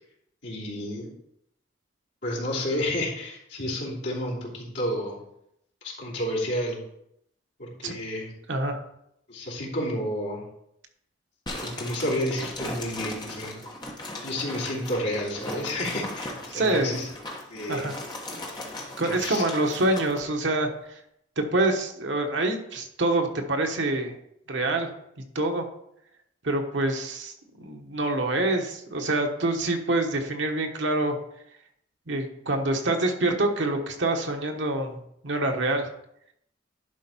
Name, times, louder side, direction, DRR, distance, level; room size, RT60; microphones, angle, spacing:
voice 1, 0.4-1.1 2.2-5.2 5.8-6.8 7.6-8.3 9.3-10.4 11.6-13.5 14.2-17.1 17.5-17.9 19.2-19.4, left 1 dB, 65° left, -6 dB, 3.1 m, -30 dB
voice 2, 8.5-8.8 16.5-17.0 17.7-17.9 19.0-21.0 21.4-24.1 24.5-24.9 25.3-25.7 26.4-31.2 32.1-35.0 35.2-35.9, right 2 dB, 70° right, 3 dB, 1.1 m, -26 dB
sound 1, 11.5-20.2, left 1 dB, 20° left, 1.2 m, -37 dB
11.0 x 4.4 x 4.4 m, 0.76 s
head